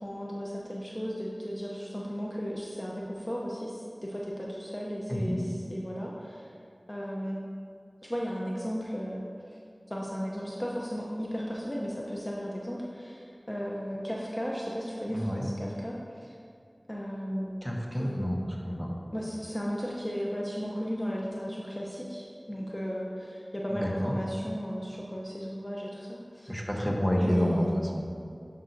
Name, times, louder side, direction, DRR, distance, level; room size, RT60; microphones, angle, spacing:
voice 1, 0.0-5.4 5.7-6.5 6.9-7.4 8.0-9.2 9.5-9.6 9.9-16.3 16.9-18.3 19.1-26.6 27.2-28.0, equal, 25° left, -4 dB, 0.8 m, -35 dB
voice 2, 15.1-15.5 17.6-18.9 23.7-24.1 26.5-28.0, equal, ahead, -2 dB, 1.1 m, -29 dB
10.0 x 5.5 x 2.7 m, 2.4 s
wide cardioid pair, 40°, 0 cm